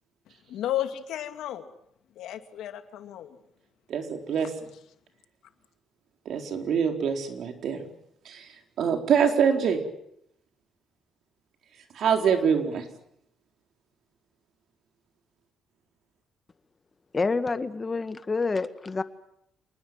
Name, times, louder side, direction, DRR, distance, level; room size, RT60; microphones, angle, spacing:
voice 1, 0.5-1.7 2.2-3.4, left 12 dB, 80° left, 8 dB, 2.4 m, -33 dB
voice 2, 3.9-4.5 6.3-7.8 8.2-8.5 8.8-9.8 11.9-12.9, right 7 dB, 70° right, 4 dB, 4.2 m, -25 dB
voice 3, 17.1-19.0, left 4 dB, 30° left, 11 dB, 1.7 m, -28 dB
27.0 x 20.5 x 7.7 m, 0.75 s
cardioid pair, 90°, 0 cm